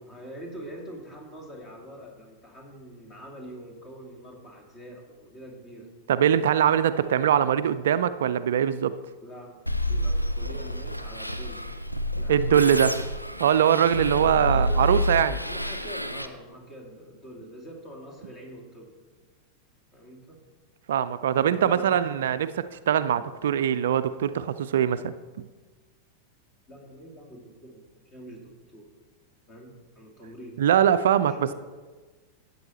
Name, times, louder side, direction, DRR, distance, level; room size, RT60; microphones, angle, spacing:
voice 1, 0.0-5.9 9.2-11.7 12.1-13.0 14.2-15.0 15.4-18.9 19.9-20.4 21.3-22.3 26.7-28.9 29.5-30.6 31.2-31.5, equal, 30° left, 1 dB, 2.5 m, -44 dB
voice 2, 6.1-8.9 12.3-12.9 13.4-15.4 20.9-25.1 30.6-31.5, right 9 dB, 60° right, 13 dB, 0.4 m, -22 dB
sound 1, 9.7-16.3, equal, 90° left, 0.6 m, -28 dB
12.5 x 8.1 x 4.2 m, 1.3 s
figure-of-eight pair, 90°, 0 cm